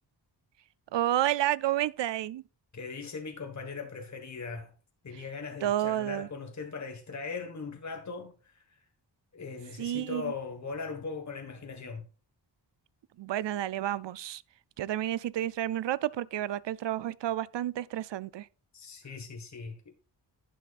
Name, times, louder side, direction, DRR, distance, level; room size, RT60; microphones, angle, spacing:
voice 1, 0.9-2.4 5.6-6.3 9.8-10.3 13.2-14.4 14.8-18.5, right 12 dB, 75° right, 0.5 m, -30 dB
voice 2, 2.7-4.7 5.0-8.8 9.3-12.1 18.7-20.0, left 4 dB, 40° left, 1.5 m, -39 dB
11.0 x 9.2 x 2.4 m
wide cardioid pair, 110°, 44 cm